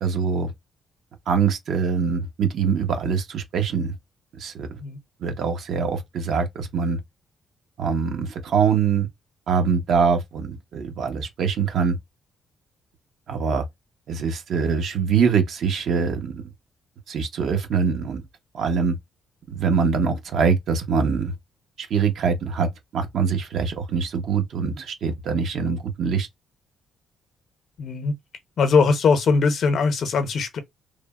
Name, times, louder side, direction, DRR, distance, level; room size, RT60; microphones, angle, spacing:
voice 1, 0.0-0.5 1.3-3.9 4.4-4.8 5.2-7.0 7.8-9.1 9.5-12.0 13.3-13.7 14.1-16.5 17.1-18.2 18.5-19.0 19.5-21.3 21.8-26.3, right 6 dB, 70° right, 0.7 m, -23 dB
voice 2, 27.8-28.1 28.6-30.6, left 5 dB, 65° left, 0.6 m, -20 dB
3.2 x 2.1 x 2.3 m
cardioid pair, 90°, 0 cm